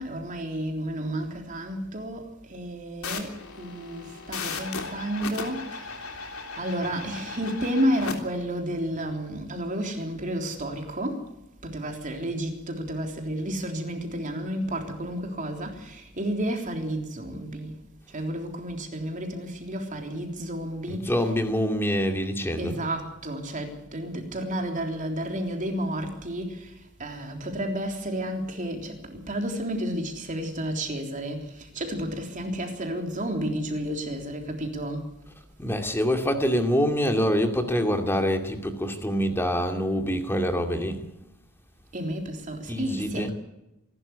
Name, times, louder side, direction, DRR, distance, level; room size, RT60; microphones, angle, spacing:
voice 1, 0.0-11.3 11.6-17.7 18.1-21.4 22.6-35.1 41.9-43.3, right 1 dB, 40° right, 3.5 m, -31 dB
sound 1, 3.0-8.1, left 4 dB, 85° left, 3.4 m, -36 dB
voice 2, 20.9-22.8 35.6-41.0 42.7-43.3, equal, 10° left, 2.4 m, -25 dB
26.5 x 12.5 x 8.4 m
head